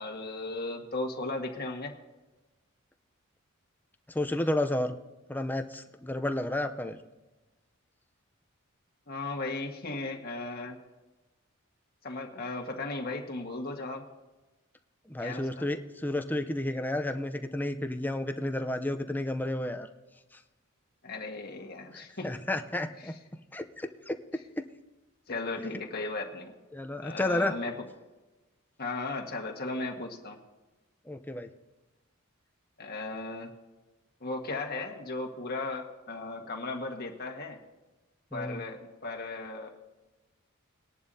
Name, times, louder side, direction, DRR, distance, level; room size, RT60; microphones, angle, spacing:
voice 1, 0.0-1.9 9.1-10.8 12.0-14.0 15.2-15.7 21.0-22.3 25.3-26.5 26.9-27.8 28.8-30.4 32.8-33.5 34.2-37.6 38.3-39.7, left 2 dB, 45° left, 1 dB, 1.6 m, -36 dB
voice 2, 4.1-4.9 5.3-7.0 15.1-19.9 21.9-23.1 23.5-24.2 26.7-27.5 31.1-31.5 38.3-38.6, left 1 dB, 10° left, 6 dB, 0.6 m, -31 dB
20.0 x 11.0 x 2.8 m, 1.1 s
head